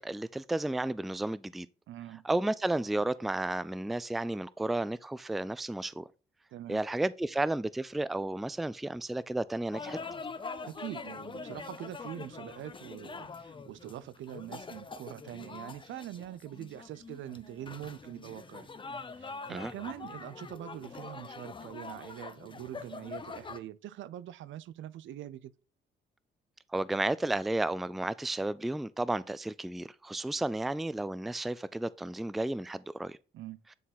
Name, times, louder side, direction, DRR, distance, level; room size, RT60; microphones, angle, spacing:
voice 1, 0.0-1.7 2.2-6.1 6.7-10.0 19.5-19.7 26.7-33.2, right 2 dB, ahead, 0.3 m, -32 dB
voice 2, 1.9-2.3 6.5-6.8 10.6-18.7 19.1-25.5 33.3-33.6, right 12 dB, 75° right, 0.6 m, -43 dB
sound 1, 9.7-23.6, left 4 dB, 25° left, 0.8 m, -44 dB
9.3 x 3.7 x 4.1 m
cardioid pair, 90°, 20 cm